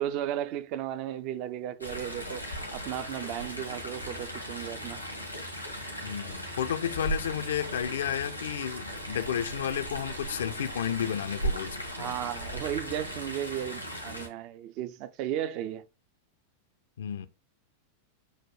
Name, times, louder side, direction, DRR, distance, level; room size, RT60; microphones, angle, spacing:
voice 1, 0.0-5.0 11.9-15.8, right 11 dB, 40° right, 0.4 m, -35 dB
Chatter / Stream, 1.8-14.3, right 1 dB, 90° left, 0.9 m, -37 dB
voice 2, 6.0-12.2 17.0-17.3, left 9 dB, 60° left, 0.4 m, -32 dB
6.2 x 2.2 x 3.1 m
figure-of-eight pair, 90°, 0 cm